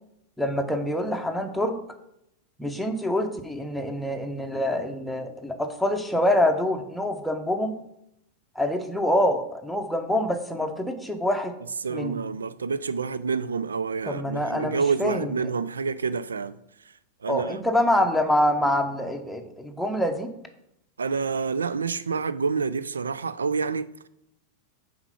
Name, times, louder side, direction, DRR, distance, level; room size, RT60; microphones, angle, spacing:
voice 1, 0.4-1.8 2.6-7.8 8.5-11.5 11.9-12.2 14.1-15.4 17.3-20.3, left 1 dB, ahead, 0.8 m, -25 dB
voice 2, 11.8-16.6 17.2-17.6 21.0-24.1, right 5 dB, 70° right, 0.3 m, -28 dB
5.9 x 4.3 x 5.7 m
figure-of-eight pair, 90°, 0 cm